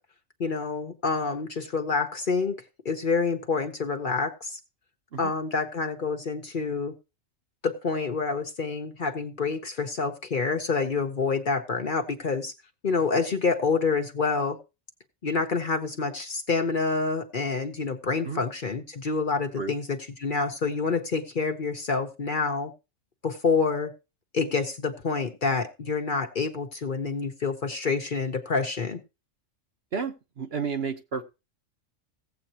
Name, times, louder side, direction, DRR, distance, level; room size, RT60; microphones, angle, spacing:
voice 1, 0.4-4.6 5.2-6.9 7.6-12.5 12.8-14.6 15.2-22.7 23.2-23.9 24.3-29.0, left 4 dB, 45° left, 5 dB, 0.9 m, -27 dB
voice 2, 29.9-31.2, right 5 dB, 55° right, 6 dB, 1.1 m, -31 dB
16.5 x 7.7 x 2.9 m, 0.27 s
omnidirectional pair, 1.4 m